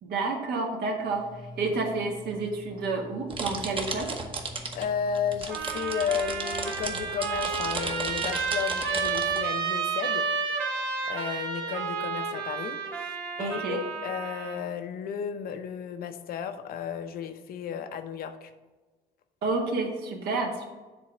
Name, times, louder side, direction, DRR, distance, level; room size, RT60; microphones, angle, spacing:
voice 1, 0.0-4.1 13.4-13.8 19.4-20.7, right 3 dB, 70° right, 2 dB, 1.5 m, -30 dB
sound 1, 1.0-6.3, left 1 dB, 5° right, 0.5 m, -47 dB
sound 2, 3.3-4.9 5.1-9.4, right 3 dB, 30° right, 1.0 m, -35 dB
voice 2, 4.7-10.3 11.1-18.5, left 7 dB, 60° left, 9 dB, 0.7 m, -33 dB
Trumpet, 5.5-14.6, right 5 dB, 90° right, 2.1 m, -31 dB
7.5 x 3.6 x 6.0 m, 1.3 s
cardioid pair, 110°, 17 cm